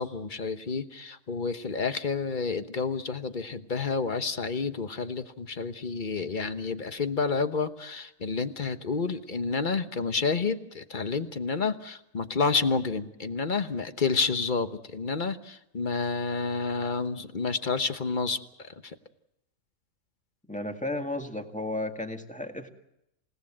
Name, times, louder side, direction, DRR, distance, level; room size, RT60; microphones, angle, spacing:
voice 1, 0.0-18.4 18.8-18.9, left 4 dB, 35° left, 10 dB, 1.1 m, -29 dB
voice 2, 20.5-22.7, left 1 dB, 5° left, 5 dB, 1.8 m, -33 dB
28.5 x 17.5 x 7.4 m, 0.83 s
omnidirectional pair, 1.5 m